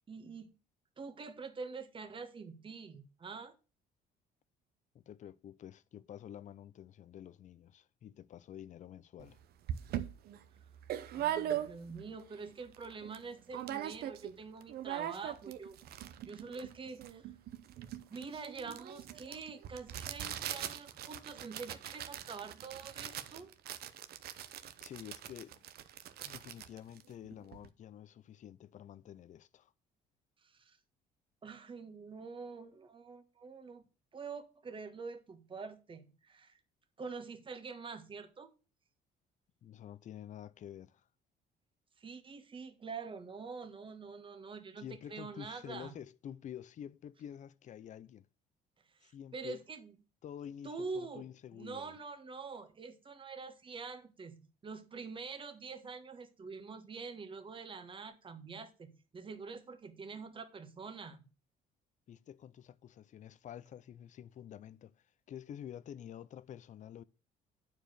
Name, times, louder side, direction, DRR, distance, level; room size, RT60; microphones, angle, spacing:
voice 1, 0.1-0.5 1.0-3.5 11.1-16.0 16.2-17.3 18.1-23.5 30.4-30.8 31.4-33.8 34.1-36.6 37.0-38.5 42.0-45.9 48.9-50.0 50.6-51.3 51.6-61.2, right 4 dB, 30° right, 1.5 m, -46 dB
voice 2, 4.9-9.4 24.8-25.6 26.2-29.7 39.6-41.1 44.8-48.3 49.0-49.6 50.2-52.0 62.1-67.0, left 10 dB, 45° left, 0.6 m, -49 dB
sound 1, 9.2-9.3 9.7-12.1 12.5-12.6 12.7-13.2 13.5-14.3 14.6-27.7, right 11 dB, 65° right, 0.9 m, -41 dB
9.2 x 4.8 x 6.5 m
cardioid pair, 110°, 17 cm